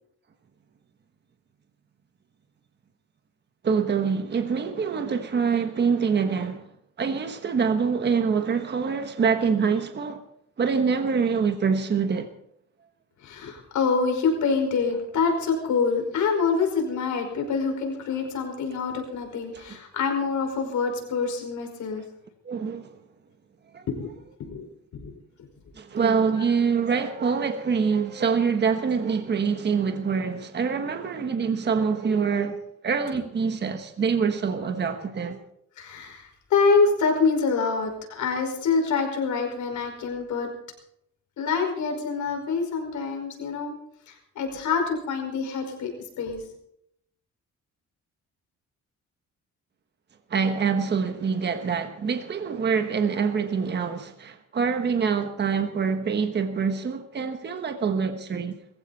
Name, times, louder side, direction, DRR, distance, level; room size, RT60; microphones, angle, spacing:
voice 1, 3.6-6.7 7.0-10.2 10.6-12.3 19.5-19.6 22.4-22.9 23.7-23.9 25.8-35.4 50.3-58.6, right 6 dB, 35° right, 1.3 m, -25 dB
voice 2, 13.2-22.0 23.9-24.1 24.4-24.7 24.9-25.2 26.4-26.5 35.8-40.5 41.4-43.8 44.1-46.4, left 5 dB, 75° left, 5.3 m, -26 dB
21.5 x 15.5 x 4.2 m
cardioid pair, 150°, 30 cm